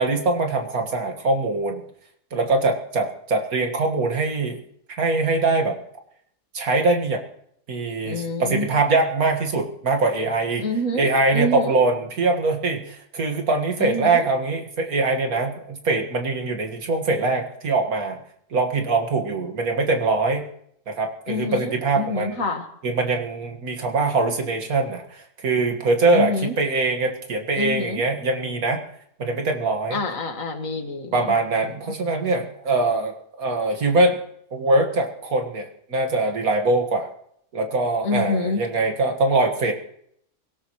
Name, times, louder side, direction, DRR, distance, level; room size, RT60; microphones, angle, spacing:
voice 1, 0.0-1.8 2.3-4.6 5.0-5.7 6.5-7.2 7.7-10.7 10.9-18.2 18.5-20.5 20.9-22.4 22.8-28.8 29.2-30.0 31.1-34.2 34.5-37.1 37.5-39.7, right 3 dB, 90° right, 3 dB, 2.3 m, -22 dB
voice 2, 8.0-8.7 10.6-11.8 13.8-14.3 21.3-22.6 26.1-26.6 27.5-28.0 29.9-31.3 31.6-31.7 38.0-38.6, left 2 dB, 70° left, 5 dB, 2.2 m, -27 dB
24.0 x 17.5 x 3.2 m, 0.70 s
omnidirectional pair, 1.5 m